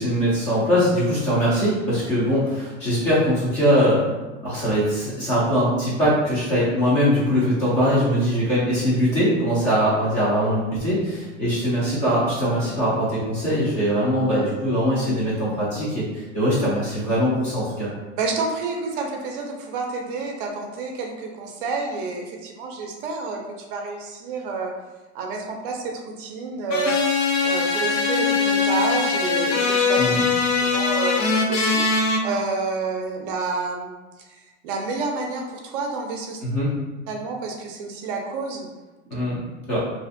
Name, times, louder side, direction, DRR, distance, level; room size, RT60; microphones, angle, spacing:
voice 1, 0.0-4.0 4.4-17.9 30.0-30.2 36.4-36.7 39.1-39.4 39.7-39.8, equal, 20° left, -8 dB, 0.3 m, -21 dB
voice 2, 18.2-24.7 25.1-26.9 27.4-30.0 30.6-31.2 31.5-34.3 34.6-36.4 37.1-38.7 39.1-39.2, right 4 dB, 50° right, 1 dB, 0.4 m, -29 dB
sound 1, 26.7-32.2, left 4 dB, 85° left, 0.6 m, -21 dB
2.4 x 2.4 x 2.5 m, 1.2 s
supercardioid pair, 160°, 36 cm